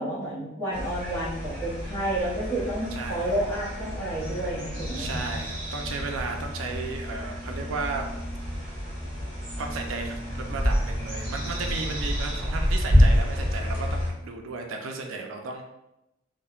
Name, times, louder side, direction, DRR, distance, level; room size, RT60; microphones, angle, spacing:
voice 1, 0.0-5.3, right 1 dB, 10° left, -10 dB, 0.7 m, -30 dB
sound 1, 0.7-14.1, equal, 30° right, 0.7 m, -28 dB
voice 2, 2.9-3.3 4.9-8.1 8.6-8.8 9.6-15.6, right 4 dB, 85° right, 3 dB, 0.4 m, -34 dB
2.9 x 2.0 x 2.3 m, 0.91 s
head